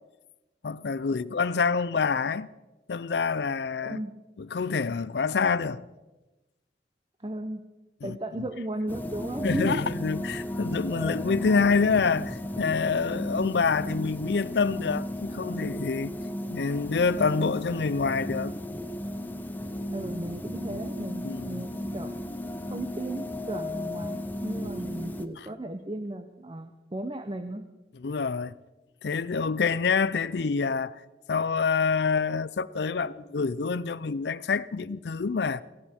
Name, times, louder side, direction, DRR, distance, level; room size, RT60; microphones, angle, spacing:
voice 1, 0.6-2.5 2.9-4.0 4.4-5.8 8.0-8.2 9.4-16.2 16.5-18.6 21.2-21.7 27.9-28.5 29.0-31.0 31.3-35.6, left 5 dB, 75° left, 0.5 m, -27 dB
voice 2, 3.8-4.2 7.2-7.6 8.0-9.8 19.9-22.1 22.7-27.6, right 1 dB, 30° right, 0.7 m, -35 dB
sound 1, 8.9-25.3, left 1 dB, 10° left, 0.6 m, -35 dB
18.0 x 16.5 x 4.4 m
head